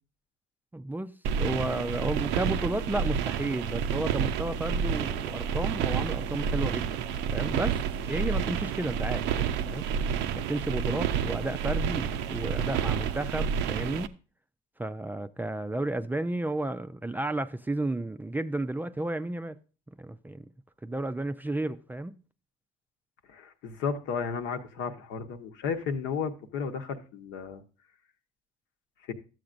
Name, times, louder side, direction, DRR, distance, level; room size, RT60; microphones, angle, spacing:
voice 1, 0.7-7.1 7.3-7.8 8.1-9.9 10.4-14.2 14.8-19.6 20.0-20.5 20.8-22.1, right 2 dB, 10° right, 0.4 m, -32 dB
sound 1, 1.2-14.1, right 7 dB, 70° right, 0.5 m, -29 dB
voice 2, 23.3-27.6 29.1-29.2, left 6 dB, 70° left, 1.0 m, -33 dB
12.0 x 7.7 x 2.5 m
supercardioid pair, 70°, 19 cm